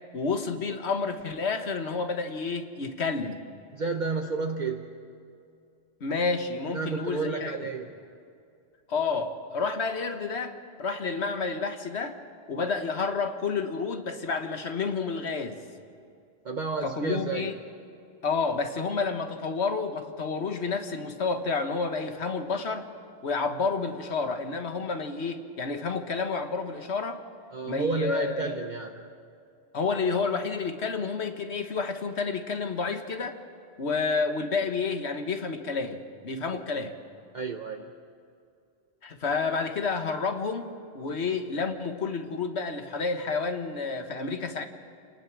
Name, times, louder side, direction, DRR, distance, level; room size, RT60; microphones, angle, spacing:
voice 1, 0.1-3.4 6.0-7.5 8.9-12.2 12.5-15.6 16.8-17.6 18.2-22.9 23.2-27.2 27.7-28.6 29.7-33.4 33.8-36.9 39.0-44.6, left 4 dB, 90° left, 7 dB, 1.6 m, -30 dB
voice 2, 3.7-4.9 6.7-7.9 16.4-17.5 27.5-29.0 37.3-37.8, right 4 dB, 45° right, 3 dB, 1.0 m, -31 dB
27.5 x 19.0 x 6.1 m, 2.4 s
omnidirectional pair, 1.1 m